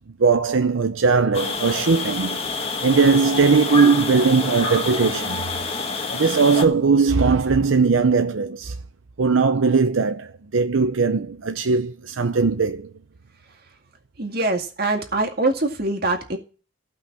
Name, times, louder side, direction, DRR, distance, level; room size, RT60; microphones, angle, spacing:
voice 1, 0.2-2.4 2.8-5.4 6.1-8.7 9.2-12.9, right 4 dB, 85° right, 0.6 m, -19 dB
sound 1, 1.3-6.6, left 4 dB, 30° left, 1.6 m, -27 dB
voice 2, 14.2-16.4, right 2 dB, 50° right, 2.1 m, -23 dB
15.5 x 5.8 x 7.2 m
head